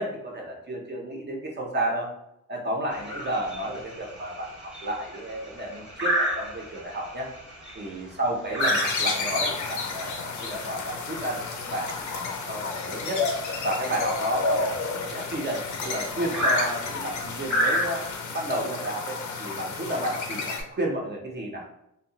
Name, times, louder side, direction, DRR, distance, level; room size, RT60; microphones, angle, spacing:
voice 1, 0.0-2.1 2.5-7.3 7.8-13.2 13.6-18.0 18.3-21.6, right 1 dB, 35° right, -1 dB, 0.5 m, -32 dB
sound 1, 2.9-18.2, equal, ahead, 0.8 m, -32 dB
sound 2, 8.6-20.6, left 4 dB, 65° left, 0.5 m, -31 dB
2.6 x 2.1 x 2.7 m, 0.82 s
wide cardioid pair, 125°, 33 cm